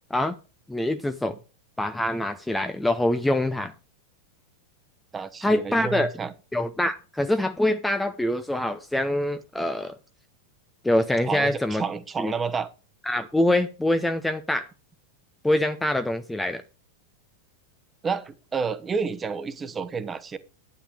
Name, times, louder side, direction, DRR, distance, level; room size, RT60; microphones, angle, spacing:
voice 1, 0.7-1.3 1.8-3.7 5.4-6.1 6.5-9.9 10.8-11.8 12.2-12.3 13.1-14.7 15.4-16.6, left 1 dB, 5° left, 0.7 m, -24 dB
voice 2, 5.1-6.3 11.3-12.7 18.0-20.4, right 5 dB, 20° right, 1.1 m, -30 dB
12.0 x 10.0 x 3.4 m
figure-of-eight pair, 90°, 0 cm